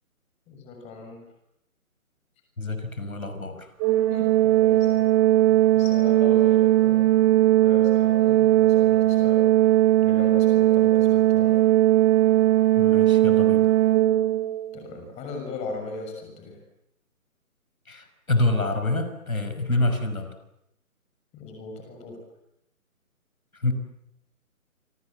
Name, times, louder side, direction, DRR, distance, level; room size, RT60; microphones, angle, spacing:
voice 1, 0.5-1.2 4.1-5.1 5.5-7.0 7.6-9.5 10.0-11.6 14.7-16.6 19.7-19.9 21.3-22.2, left 3 dB, 15° left, 3 dB, 6.4 m, -38 dB
voice 2, 2.6-3.7 12.8-13.7 17.9-20.3 23.5-23.7, left 2 dB, 75° left, 8 dB, 5.8 m, -27 dB
Organ, 3.8-14.7, right 15 dB, 15° right, 1.9 m, -19 dB
28.5 x 25.5 x 7.7 m, 0.79 s
figure-of-eight pair, 145°, 43 cm